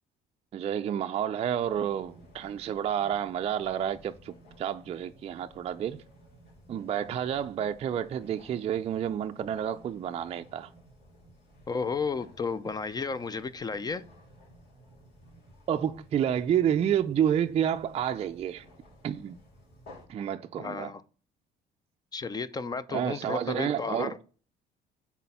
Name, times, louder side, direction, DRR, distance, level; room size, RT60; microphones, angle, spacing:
voice 1, 0.5-6.0 6.7-10.7 15.7-18.6 19.0-19.4 20.1-20.9 22.9-24.1, right 9 dB, 40° right, 0.4 m, -29 dB
sound 1, 1.6-20.1, equal, 85° left, 2.6 m, -55 dB
voice 2, 11.7-14.0 20.6-21.0 22.1-24.2, left 4 dB, 25° left, 0.4 m, -33 dB
5.9 x 4.3 x 5.6 m
cardioid pair, 110°, 17 cm